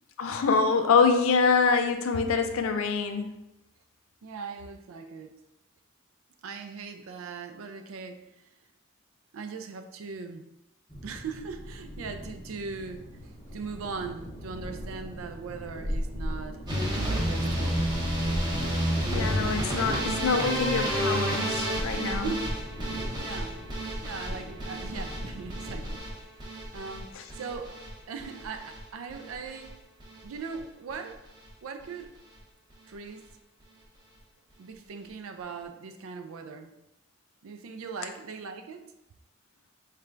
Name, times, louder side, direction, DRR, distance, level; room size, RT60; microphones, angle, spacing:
voice 1, 0.2-3.3 19.1-22.3, left 5 dB, 80° left, 7 dB, 0.4 m, -25 dB
voice 2, 4.2-5.3 6.4-8.2 9.3-10.5 11.0-16.6 17.0-17.9 22.1-22.5 23.2-23.6 24.0-26.0 26.7-27.8 28.1-29.7 30.2-31.2 31.6-32.1 32.9-33.2 34.6-36.7 37.4-38.8, right 5 dB, 80° right, 7 dB, 0.4 m, -39 dB
sound 1, 10.9-26.0, equal, 20° left, 0.6 m, -39 dB
sound 2, 16.7-28.8 29.1-29.7 30.0-30.6 30.9-31.1 31.5-31.6 31.8-31.9, right 1 dB, 20° right, 0.8 m, -31 dB
4.4 x 3.2 x 2.5 m, 0.91 s
head